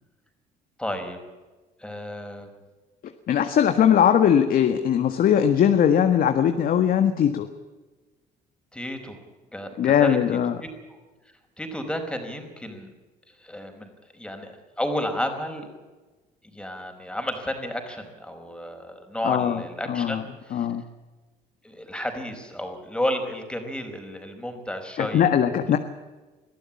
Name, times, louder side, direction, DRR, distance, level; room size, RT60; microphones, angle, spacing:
voice 1, 0.8-1.2 1.8-2.6 8.7-9.2 9.5-10.2 10.6-11.0 11.6-12.9 13.4-15.7 16.5-20.7 21.6-25.3, left 1 dB, 5° left, 5 dB, 4.9 m, -32 dB
voice 2, 3.3-7.5 9.8-10.6 19.2-19.6 19.9-20.2 20.5-20.8 25.0-25.8, left 9 dB, 55° left, 7 dB, 1.6 m, -20 dB
23.0 x 14.5 x 8.5 m, 1.2 s
cardioid pair, 110°, 17 cm